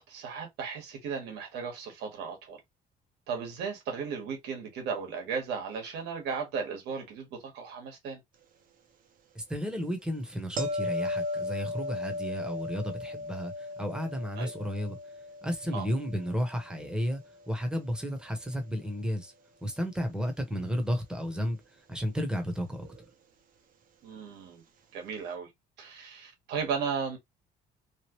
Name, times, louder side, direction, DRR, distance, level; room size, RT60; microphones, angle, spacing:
voice 1, 0.0-2.6 3.3-8.2 14.4-14.5 15.7-15.9 24.0-24.6 24.9-25.5 25.8-27.2, right 6 dB, 80° right, 1.5 m, -35 dB
voice 2, 9.3-15.0 15.4-17.2 17.5-19.3 19.6-21.6 21.9-22.9, equal, 5° right, 1.1 m, -33 dB
sound 1, 10.6-17.6 22.8-23.0, left 2 dB, 55° right, 0.9 m, -37 dB
3.2 x 2.4 x 3.1 m
cardioid pair, 110°, 17 cm